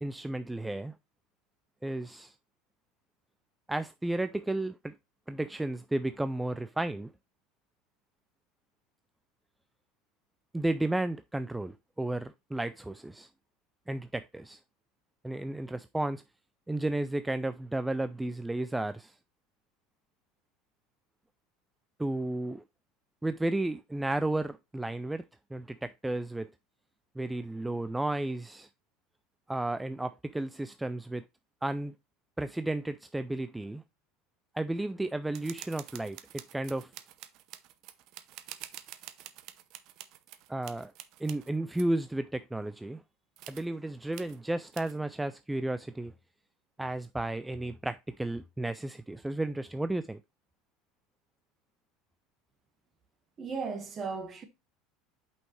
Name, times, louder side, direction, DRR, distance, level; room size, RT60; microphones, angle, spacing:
voice 1, 0.0-0.9 1.8-2.3 3.7-4.9 5.3-7.1 10.5-13.3 13.9-14.6 15.2-16.2 16.7-19.2 22.0-22.6 23.2-25.2 25.5-26.5 27.2-28.7 29.5-31.3 31.6-31.9 32.4-33.8 34.5-36.9 40.5-40.9 41.2-43.0 43.5-46.1 46.8-50.2, right 2 dB, 10° right, 0.4 m, -33 dB
sound 1, 35.3-41.8 43.4-43.7 44.1-44.4 44.7-45.0, right 13 dB, 60° right, 0.7 m, -47 dB
voice 2, 53.4-54.5, right 5 dB, 35° right, 1.6 m, -36 dB
5.9 x 5.6 x 3.2 m
supercardioid pair, 95°, 0 cm